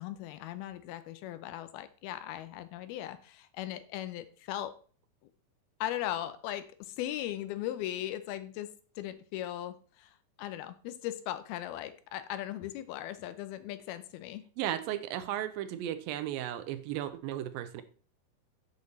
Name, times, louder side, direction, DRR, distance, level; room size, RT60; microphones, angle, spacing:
voice 1, 0.0-4.8 5.8-8.7 9.0-14.4, left 13 dB, 85° left, 12 dB, 2.7 m, -38 dB
voice 2, 14.6-17.8, right 12 dB, 80° right, 11 dB, 2.3 m, -35 dB
8.5 x 6.6 x 4.0 m, 0.41 s
omnidirectional pair, 4.3 m